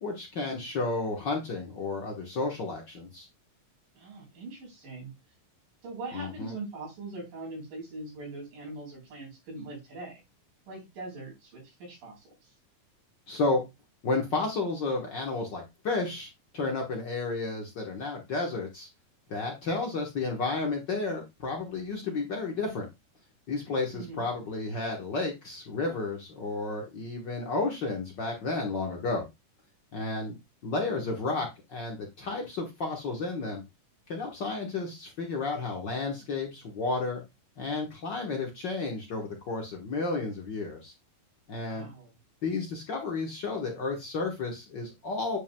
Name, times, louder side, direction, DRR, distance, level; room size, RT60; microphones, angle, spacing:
voice 1, 0.0-3.3 6.1-6.5 13.3-13.6 14.0-18.9 19.3-22.9 23.5-29.3 29.9-30.4 30.6-33.6 34.1-37.2 37.6-40.9 41.5-41.9 42.4-45.4, left 3 dB, 65° left, 1 dB, 1.1 m, -32 dB
voice 2, 4.0-5.1 5.8-10.2 10.7-12.5 23.9-24.2 41.7-42.1, right 2 dB, 85° right, -2 dB, 5.3 m, -42 dB
8.9 x 5.4 x 2.2 m, 0.21 s
omnidirectional pair, 3.8 m